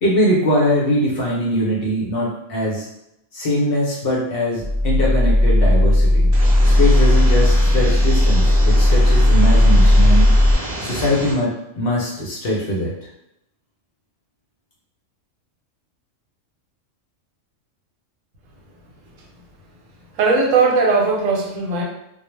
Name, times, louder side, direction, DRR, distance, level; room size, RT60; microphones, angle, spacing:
voice 1, 0.0-2.9 3.3-6.3 6.6-10.3 10.8-12.9, equal, 60° left, -4 dB, 0.7 m, -21 dB
sound 1, 4.6-10.5, left 1 dB, 5° right, 0.5 m, -14 dB
sound 2, 6.3-11.3, right 1 dB, 55° right, 0.7 m, -29 dB
voice 2, 20.1-21.8, right 4 dB, 80° right, -1 dB, 1.0 m, -18 dB
2.2 x 2.0 x 3.0 m, 0.82 s
omnidirectional pair, 1.3 m